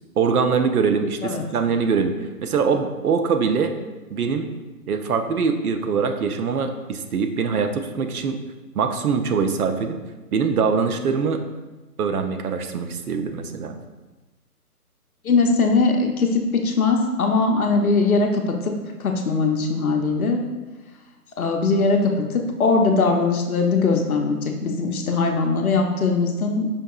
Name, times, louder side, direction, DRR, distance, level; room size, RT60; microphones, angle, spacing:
voice 1, 0.2-2.1 2.4-3.7 4.1-4.5 4.9-8.4 8.8-10.0 10.3-11.4 12.0-13.8, right 5 dB, 70° right, 7 dB, 0.5 m, -23 dB
voice 2, 15.2-20.4 21.4-26.7, left 4 dB, 65° left, 3 dB, 0.6 m, -21 dB
5.1 x 2.8 x 2.3 m, 1.2 s
hypercardioid pair, 175°, 47 cm